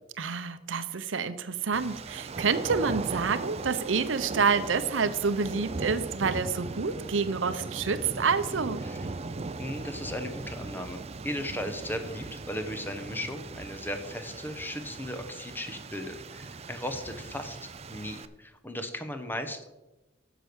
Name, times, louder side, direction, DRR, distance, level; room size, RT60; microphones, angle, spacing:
voice 1, 0.2-8.8, right 5 dB, 85° right, 13 dB, 0.7 m, -28 dB
sound 1, 1.7-18.3, right 3 dB, 35° right, 0.5 m, -39 dB
voice 2, 9.6-17.6 17.9-19.7, left 1 dB, 10° left, 7 dB, 1.0 m, -36 dB
10.0 x 6.9 x 6.1 m, 1.0 s
head